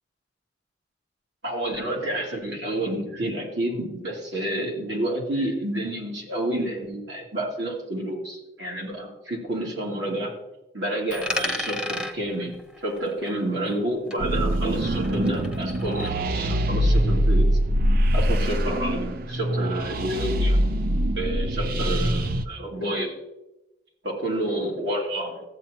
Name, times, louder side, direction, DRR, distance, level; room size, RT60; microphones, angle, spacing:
voice 1, 1.4-10.4 10.7-12.5 12.8-17.5 18.1-20.6 21.1-23.2 24.0-25.4, right 1 dB, 75° right, -2 dB, 2.6 m, -29 dB
Coin (dropping), 11.1-13.9 14.1-16.1, left 2 dB, 5° right, 0.9 m, -34 dB
sound 1, 14.2-22.5, equal, 55° right, 0.6 m, -23 dB
14.0 x 8.3 x 3.0 m, 0.96 s
head